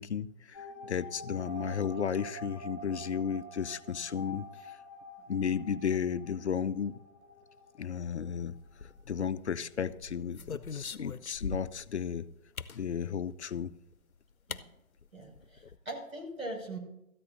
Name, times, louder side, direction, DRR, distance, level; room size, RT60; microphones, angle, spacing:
voice 1, 0.0-4.8 5.3-7.0 7.8-8.6 9.1-12.3 12.7-13.7, left 7 dB, 55° left, 0.6 m, -34 dB
sound 1, 0.5-9.0 9.3-9.4 9.6-9.7, right 1 dB, 20° left, 1.4 m, -47 dB
sound 2, 8.7-9.4 9.9-11.9 12.6-12.8 13.9-14.0 14.5-14.6 15.0-15.1 15.3-15.8, left 4 dB, 90° left, 0.8 m, -41 dB
voice 2, 15.1-16.8, right 1 dB, 80° right, 5.9 m, -41 dB
19.0 x 13.5 x 2.6 m
figure-of-eight pair, 140°, 41 cm